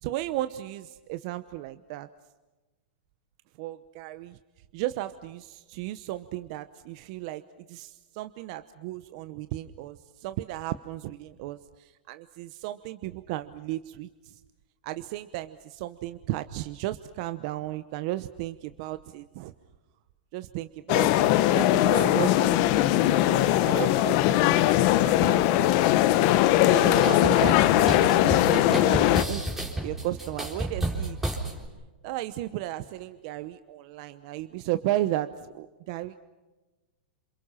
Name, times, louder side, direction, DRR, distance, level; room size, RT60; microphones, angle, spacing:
voice 1, 0.0-2.1 3.6-4.4 4.7-7.4 7.7-14.4 14.8-19.5 20.3-25.9 26.4-29.4 29.8-31.2 32.0-36.2, right 15 dB, 45° right, 11 dB, 0.9 m, -35 dB
sound 1, 20.9-29.2, left 14 dB, 40° left, 1.2 m, -21 dB
sound 2, 26.6-31.7, right 1 dB, 5° right, 3.9 m, -32 dB
28.0 x 27.5 x 5.7 m, 1.2 s
hypercardioid pair, 150°, 5 cm